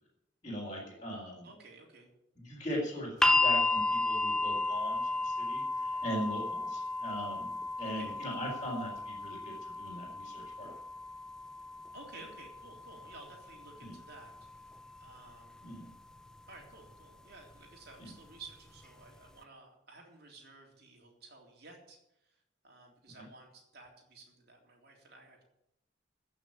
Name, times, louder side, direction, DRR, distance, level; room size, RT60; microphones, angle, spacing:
voice 1, 0.4-1.5 2.4-7.5 7.8-10.7 13.8-13.9 15.6-15.9 18.0-18.1 23.2-23.3, equal, 25° left, -7 dB, 3.9 m, -40 dB
voice 2, 1.4-2.1 7.8-8.2 11.9-15.8 16.5-25.4, right 3 dB, 55° right, 0 dB, 3.5 m, -54 dB
sound 1, 3.2-15.3 16.4-16.5, left 2 dB, 5° left, 0.5 m, -33 dB
15.0 x 6.4 x 8.9 m, 0.84 s
head